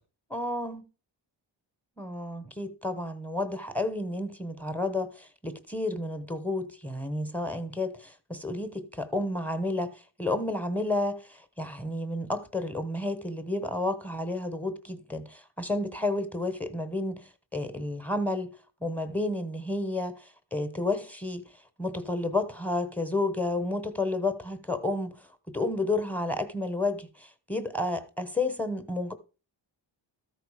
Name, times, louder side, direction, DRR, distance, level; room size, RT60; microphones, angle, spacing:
voice 1, 0.3-0.8 2.0-17.2 17.5-18.5 18.8-20.2 20.5-21.4 21.8-25.1 25.5-29.1, left 2 dB, 5° left, 0.9 m, -31 dB
14.0 x 4.7 x 4.9 m
wide cardioid pair, 175°, 45 cm